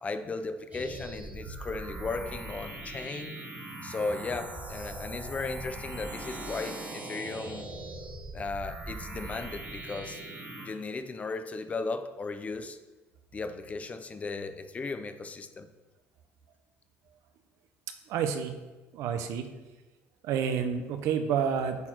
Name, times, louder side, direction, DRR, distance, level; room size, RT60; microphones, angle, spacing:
voice 1, 0.0-3.4 3.8-7.6 8.3-10.2 10.6-12.8 13.3-15.7, left 3 dB, 25° left, 9 dB, 0.6 m, -36 dB
sound 1, 0.7-10.7, right 2 dB, 30° right, 2.0 m, -40 dB
voice 2, 18.1-18.5 18.9-19.5 20.2-21.8, right 7 dB, 75° right, 8 dB, 0.8 m, -29 dB
8.5 x 4.4 x 4.5 m, 1.2 s
cardioid pair, 110°, 5 cm